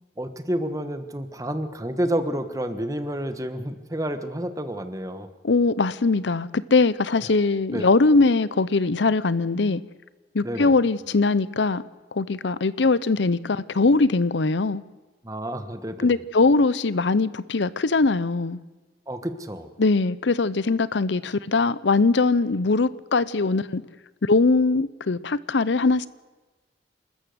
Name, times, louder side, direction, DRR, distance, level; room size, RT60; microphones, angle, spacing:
voice 1, 0.2-5.3 7.7-7.9 10.4-10.8 15.2-16.2 19.1-19.7, right 1 dB, 20° right, 1.4 m, -29 dB
voice 2, 5.4-9.8 10.3-11.8 12.1-14.8 16.0-18.6 19.8-23.8 24.2-26.1, left 3 dB, 80° left, 0.7 m, -21 dB
28.5 x 14.0 x 8.0 m
head